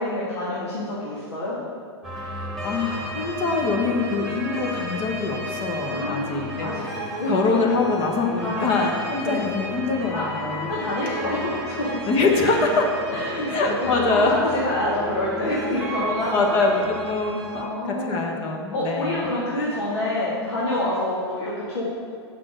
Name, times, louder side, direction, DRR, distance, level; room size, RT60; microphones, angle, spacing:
voice 1, 0.0-1.6 5.9-7.6 8.4-8.8 9.3-9.4 10.1-10.2 10.6-12.1 13.1-13.5 13.8-16.8 17.6-18.3 18.7-21.8, left 1 dB, 75° left, -7 dB, 1.9 m, -27 dB
sound 1, 2.0-17.6, equal, ahead, 1.6 m, -33 dB
voice 2, 2.4-6.7 7.2-10.7 12.1-12.8 13.5-14.4 16.3-19.3, left 3 dB, 40° left, 1 dB, 1.2 m, -24 dB
6.2 x 5.9 x 6.2 m, 2.2 s
hypercardioid pair, 100°, 14 cm